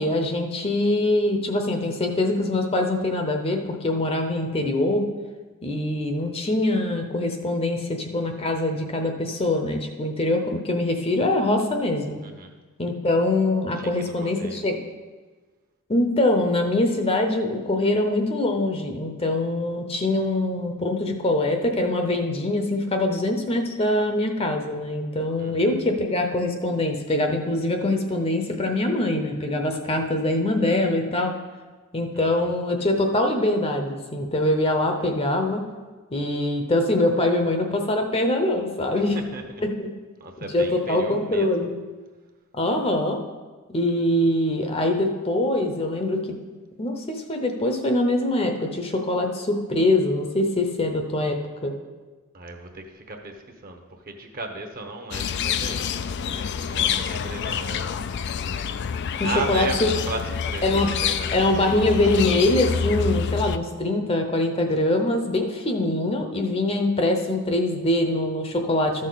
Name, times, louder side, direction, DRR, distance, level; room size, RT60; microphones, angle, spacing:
voice 1, 0.0-5.1 5.6-12.2 12.8-14.8 15.9-31.3 31.9-35.6 36.1-39.2 39.6-39.9 40.5-41.7 42.5-43.2 43.7-46.4 46.8-51.7 59.2-59.9 60.6-60.9 61.3-69.1, left 1 dB, 25° left, 4 dB, 0.7 m, -23 dB
voice 2, 12.2-12.5 13.7-14.6 25.4-25.8 32.1-32.5 39.1-39.6 40.2-41.7 52.3-57.9 59.1-61.7, right 3 dB, 40° right, 4 dB, 1.0 m, -36 dB
sound 1, 55.1-63.6, left 7 dB, 50° left, 0.4 m, -27 dB
13.0 x 6.4 x 4.0 m, 1.3 s
head